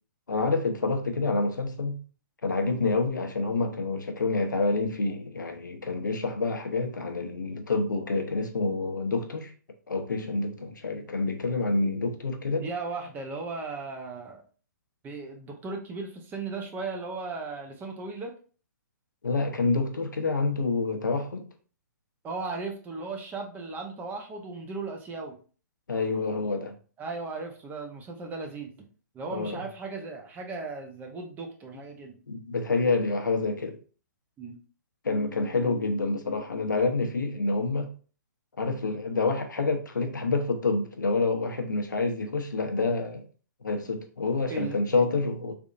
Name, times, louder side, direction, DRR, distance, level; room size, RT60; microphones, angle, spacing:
voice 1, 0.3-2.0 2.4-9.5 9.9-12.7 19.2-21.5 25.9-26.7 29.3-29.6 32.3-33.8 35.0-37.9 38.6-43.2 43.6-45.5, left 3 dB, 85° left, 0.9 m, -27 dB
voice 2, 12.6-14.4 15.0-18.3 22.2-25.4 27.0-28.7 29.1-32.2 34.4-34.6 44.5-44.8, right 3 dB, 20° right, 0.8 m, -36 dB
3.6 x 3.5 x 2.6 m
hypercardioid pair, 130°, 10 cm